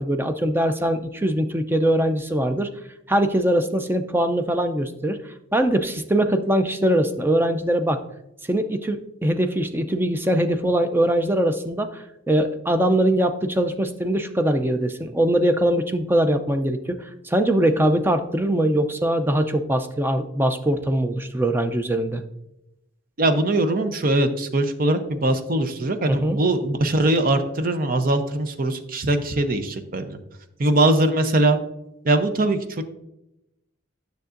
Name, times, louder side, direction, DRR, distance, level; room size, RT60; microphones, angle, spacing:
voice 1, 0.0-2.7 3.1-5.2 5.5-8.0 8.4-22.2 26.1-26.4, right 1 dB, 10° right, 8 dB, 0.4 m, -22 dB
voice 2, 23.2-30.2 30.6-31.6 32.0-32.8, right 2 dB, 45° right, 8 dB, 0.7 m, -21 dB
9.4 x 6.5 x 2.5 m, 0.87 s
head